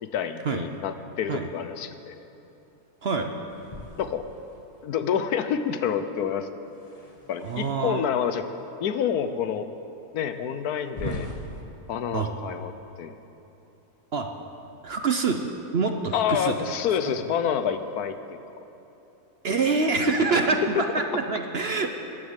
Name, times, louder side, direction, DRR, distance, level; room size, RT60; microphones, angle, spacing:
voice 1, 0.0-2.2 4.0-4.2 4.8-6.5 7.3-8.5 8.8-9.7 10.1-11.3 11.9-12.7 13.0-13.2 16.1-18.4, left 8 dB, 75° left, 10 dB, 1.2 m, -28 dB
sound 1, 3.5-4.9 6.6-8.1 8.9-9.0 9.6-9.7 10.8-11.6, left 2 dB, 25° left, 1.2 m, -40 dB
voice 2, 7.4-8.1 11.0-11.2 12.1-12.3 14.1-14.3 14.8-15.4 15.7-16.6 19.4-21.9, right 4 dB, 50° right, 5 dB, 0.8 m, -25 dB
14.0 x 10.5 x 8.1 m, 2.9 s
omnidirectional pair, 1.7 m